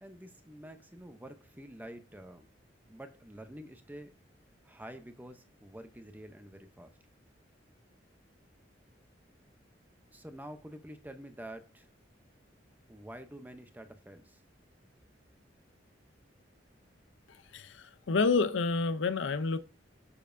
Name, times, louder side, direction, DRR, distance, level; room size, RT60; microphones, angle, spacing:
voice 1, 0.0-2.4 2.9-4.1 4.6-6.9 10.1-11.9 12.9-14.4, right 1 dB, 10° right, 0.7 m, -48 dB
voice 2, 17.3-19.6, left 4 dB, 80° left, 0.6 m, -29 dB
7.3 x 6.8 x 2.6 m
head